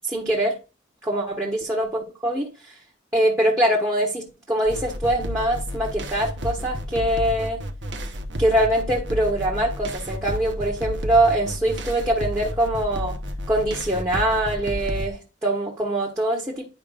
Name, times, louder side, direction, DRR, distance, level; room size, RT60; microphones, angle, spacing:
voice 1, 0.1-0.6 1.0-2.7 3.1-7.7 8.4-13.2 13.5-16.7, right 1 dB, 15° right, 1.3 m, -23 dB
sound 1, 4.7-15.1, equal, 70° right, 1.0 m, -31 dB
10.5 x 5.0 x 2.5 m
head